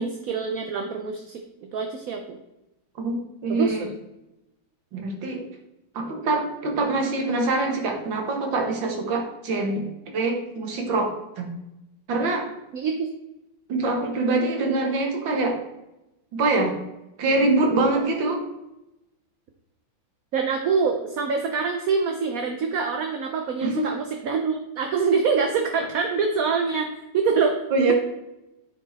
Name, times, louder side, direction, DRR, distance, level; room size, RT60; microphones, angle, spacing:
voice 1, 0.0-1.4 1.7-2.4 3.5-3.9 12.7-13.1 20.3-27.6, right 5 dB, 60° right, 4 dB, 1.0 m, -25 dB
voice 2, 3.0-3.9 4.9-5.4 6.0-11.5 12.1-12.5 13.7-15.6 16.3-16.8 17.2-18.4 23.6-23.9 27.7-27.9, right 2 dB, 75° right, 3 dB, 2.1 m, -24 dB
9.6 x 4.8 x 4.1 m, 0.93 s
omnidirectional pair, 2.1 m